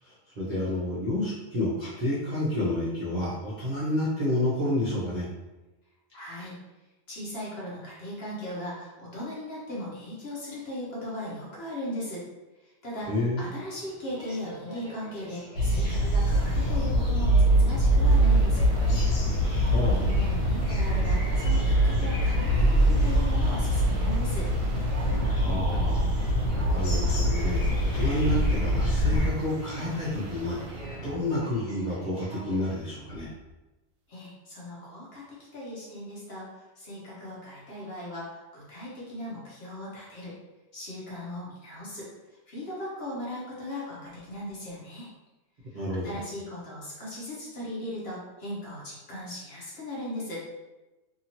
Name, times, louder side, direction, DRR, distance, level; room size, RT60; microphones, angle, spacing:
voice 1, 0.0-5.3 13.1-13.4 19.4-20.1 25.3-33.3 45.7-46.2, left 1 dB, 50° right, -9 dB, 0.5 m, -30 dB
voice 2, 6.1-6.6 7.1-12.2 12.6-13.1 13.4-19.0 20.0-24.5 34.1-40.4 40.7-42.1 42.5-45.1 45.7-50.4, left 1 dB, 50° left, -6 dB, 0.9 m, -38 dB
Aircraft, 13.4-32.8, right 1 dB, 10° left, 0.9 m, -46 dB
sound 1, 15.6-29.3, right 1 dB, 80° left, 1.2 m, -23 dB
sound 2, 16.2-31.3 33.1-33.5, right 2 dB, 70° right, 1.0 m, -41 dB
2.7 x 2.7 x 2.9 m, 1.1 s
omnidirectional pair, 1.5 m